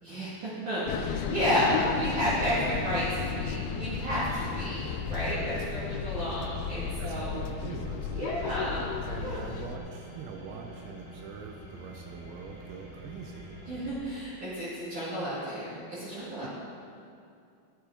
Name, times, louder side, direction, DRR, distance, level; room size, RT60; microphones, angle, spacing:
voice 1, 0.0-7.4 8.1-8.9 9.1-9.5 13.7-16.5, equal, 50° right, -10 dB, 3.0 m, -32 dB
sound 1, 0.9-9.8, left 7 dB, 85° left, 2.9 m, -34 dB
sound 2, 2.6-13.9, right 1 dB, 15° left, 1.9 m, -48 dB
voice 2, 6.9-13.6 16.4-16.5, right 6 dB, 85° right, 2 dB, 3.0 m, -43 dB
11.5 x 9.0 x 3.8 m, 2.4 s
omnidirectional pair, 5.2 m